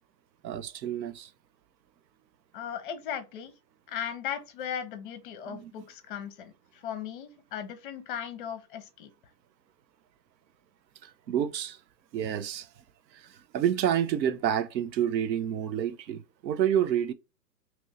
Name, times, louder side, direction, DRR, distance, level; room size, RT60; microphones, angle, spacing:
voice 1, 0.4-1.3 5.5-5.7 11.0-11.8 12.1-12.7 13.1-17.1, right 9 dB, 85° right, 0.6 m, -29 dB
voice 2, 2.5-3.5 3.9-9.1, left 9 dB, 35° left, 0.6 m, -37 dB
2.9 x 2.6 x 3.1 m
hypercardioid pair, 140°, 50 cm